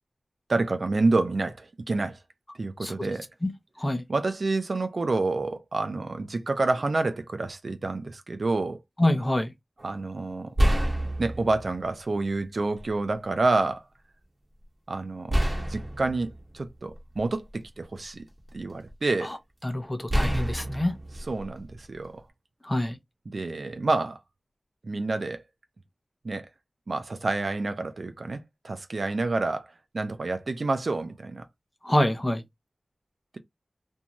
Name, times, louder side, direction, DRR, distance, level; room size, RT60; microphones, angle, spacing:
voice 1, 0.5-2.2 2.6-3.3 4.1-8.8 9.8-10.5 11.2-13.8 14.9-15.4 15.7-18.2 18.5-19.4 21.2-22.2 23.3-24.2 24.8-25.4 26.2-26.5 26.9-31.5, right 3 dB, 60° right, 0.5 m, -28 dB
voice 2, 9.0-9.5 19.6-20.9 22.7-22.9 31.9-32.4, left 1 dB, 20° left, 0.7 m, -25 dB
sound 1, 9.8-10.0 10.6-11.8 12.8-12.9 15.3-17.5 18.0-18.9 20.1-22.2, equal, 30° right, 1.0 m, -28 dB
2.6 x 2.3 x 2.9 m
wide cardioid pair, 75°, 0 cm